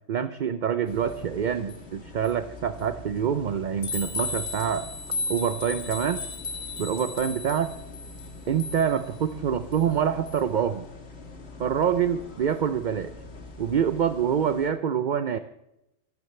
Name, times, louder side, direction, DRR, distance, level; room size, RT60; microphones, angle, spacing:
voice 1, 0.1-4.9 5.3-6.2 6.8-7.7 8.5-10.9 11.6-13.1 13.6-15.4, right 8 dB, 50° right, 11 dB, 0.6 m, -26 dB
sound 1, 0.9-14.7, left 3 dB, 60° left, 1.9 m, -37 dB
21.5 x 12.5 x 3.2 m, 0.87 s
omnidirectional pair, 1.3 m